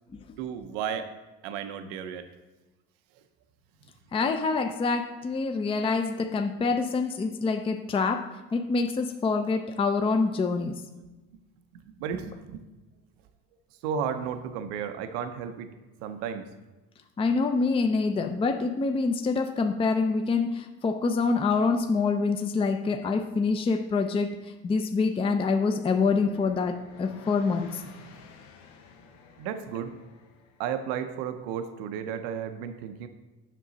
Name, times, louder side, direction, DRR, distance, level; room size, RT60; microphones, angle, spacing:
voice 1, 0.4-1.1 1.4-2.3 11.0-11.1 11.7-12.6 13.8-15.7 16.0-16.5 28.1-28.2 29.4-29.9 30.6-33.1, right 8 dB, 85° right, 9 dB, 0.7 m, -33 dB
voice 2, 4.1-8.3 8.5-10.8 17.2-27.8, left 4 dB, 20° left, 6 dB, 0.5 m, -26 dB
sound 1, 25.7-30.8, left 6 dB, 75° left, 1.0 m, -50 dB
7.5 x 6.1 x 4.0 m, 1.1 s
supercardioid pair, 100°, 30 cm